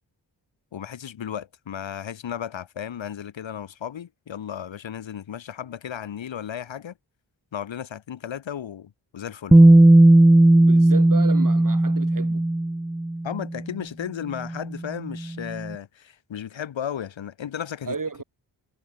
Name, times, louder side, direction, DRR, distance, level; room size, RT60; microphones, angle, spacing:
voice 1, 0.7-6.9 7.5-9.6 13.2-17.9, left 9 dB, 90° left, 1.8 m, -34 dB
Bass guitar, 9.5-13.4 14.6-14.7, right 1 dB, 5° right, 0.4 m, -15 dB
voice 2, 10.5-12.5 17.8-18.2, right 4 dB, 45° right, 2.6 m, -33 dB
cardioid pair, 50°, 45 cm